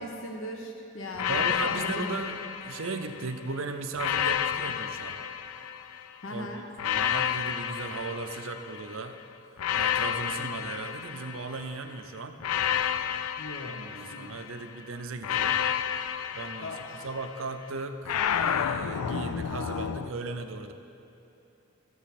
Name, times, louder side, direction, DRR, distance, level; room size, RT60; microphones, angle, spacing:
voice 1, 0.0-2.2 2.8-2.9 6.2-6.6 13.4-13.8 14.1-14.4 16.6-17.1, left 1 dB, 60° left, 2 dB, 0.9 m, -39 dB
sound 1, 1.2-3.3 4.0-6.1 6.8-9.0 9.6-11.7 12.4-14.6 15.2-17.4 18.1-20.1, left 9 dB, 80° left, 0.4 m, -30 dB
voice 2, 1.3-2.4 2.6-5.2 6.3-6.5 6.8-9.2 9.7-12.4 13.6-15.6 16.3-16.7 17.0-20.7, right 3 dB, 60° right, 7 dB, 0.6 m, -37 dB
15.0 x 7.0 x 4.2 m, 2.9 s
head